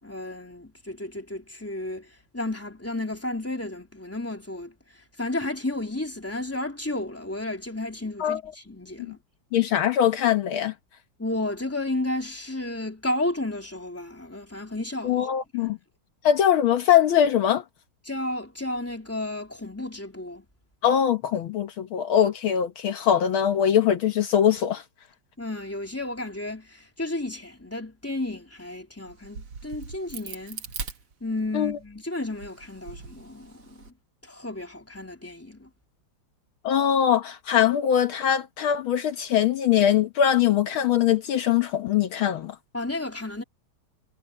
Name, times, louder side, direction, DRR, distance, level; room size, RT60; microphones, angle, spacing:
voice 1, 0.0-9.2 11.2-15.3 15.6-15.7 18.0-20.5 25.4-30.6 31.2-33.9 34.2-35.7 42.7-43.4, left 2 dB, 5° left, 3.3 m, -32 dB
voice 2, 9.5-10.7 15.0-15.8 16.2-17.6 20.8-24.8 31.5-31.8 36.6-42.6, left 9 dB, 70° left, 1.9 m, -22 dB
Crack, 29.1-31.7 32.2-33.9, right 6 dB, 80° right, 2.9 m, -40 dB
omnidirectional pair, 2.4 m